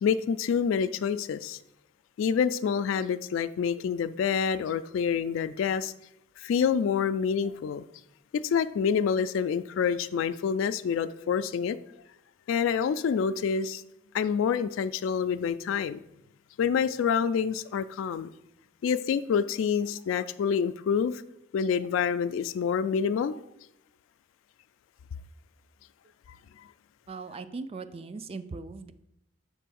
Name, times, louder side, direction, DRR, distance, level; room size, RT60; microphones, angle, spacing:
voice 1, 0.0-1.6 2.2-5.9 6.4-7.8 8.3-11.8 12.5-13.8 14.1-16.0 16.6-18.3 18.8-21.2 21.5-23.4, left 7 dB, 85° left, 0.3 m, -27 dB
voice 2, 27.1-28.9, right 4 dB, 30° right, 0.3 m, -39 dB
7.6 x 3.3 x 6.2 m
head